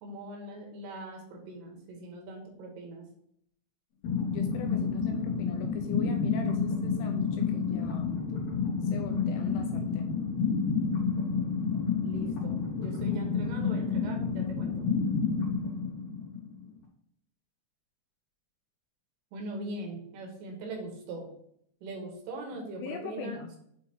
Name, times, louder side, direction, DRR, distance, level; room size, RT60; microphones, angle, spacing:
voice 1, 0.0-3.0 12.0-14.9 19.3-21.3 21.8-23.4, right 2 dB, 75° right, 1 dB, 3.4 m, -41 dB
sound 1, 4.0-16.7, left 5 dB, 70° left, 1.8 m, -30 dB
voice 2, 4.3-8.2 8.8-10.2 22.8-23.5, left 7 dB, 85° left, 4 dB, 2.9 m, -40 dB
8.3 x 2.8 x 4.2 m, 0.71 s
omnidirectional pair, 5.9 m